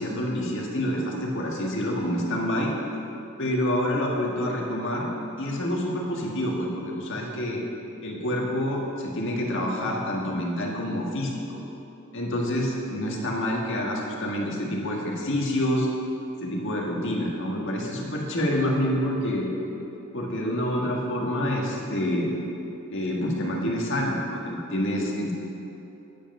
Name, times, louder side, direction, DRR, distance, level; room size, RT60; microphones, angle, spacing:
voice 1, 0.0-2.7 3.4-5.1 5.4-7.6 8.0-11.6 12.1-15.9 16.4-19.5 20.1-22.3 22.9-25.3, left 1 dB, 65° left, -1 dB, 1.7 m, -27 dB
10.0 x 7.9 x 5.4 m, 2.9 s
head